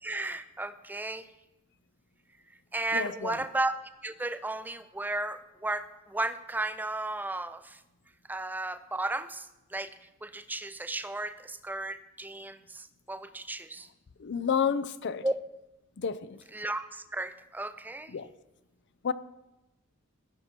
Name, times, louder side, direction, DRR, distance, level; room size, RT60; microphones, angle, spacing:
voice 1, 0.0-1.3 2.7-3.7 4.0-7.8 8.3-9.9 10.2-13.9 15.2-15.3 16.5-18.1, right 2 dB, 10° right, 0.4 m, -34 dB
voice 2, 2.9-3.4 14.2-15.2 16.0-16.4 18.1-18.3 19.0-19.1, left 6 dB, 60° left, 0.5 m, -30 dB
15.0 x 6.0 x 4.4 m
head